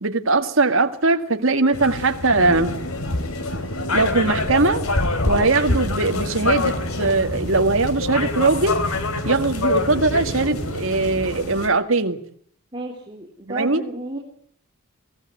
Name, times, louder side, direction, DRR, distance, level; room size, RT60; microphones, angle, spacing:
voice 1, 0.0-2.7 3.9-4.8 5.3-8.9 9.2-12.2 13.5-13.8, right 3 dB, 65° right, 6 dB, 2.0 m, -20 dB
sound 1, 1.7-11.7, left 2 dB, 80° left, 3.2 m, -26 dB
sound 2, 2.3-9.1, left 1 dB, 40° left, 4.2 m, -44 dB
sound 3, 5.6-11.3, equal, 5° left, 6.6 m, -35 dB
voice 2, 12.7-14.2, right 2 dB, 25° right, 0 dB, 3.8 m, -32 dB
23.5 x 17.0 x 9.3 m, 0.63 s
head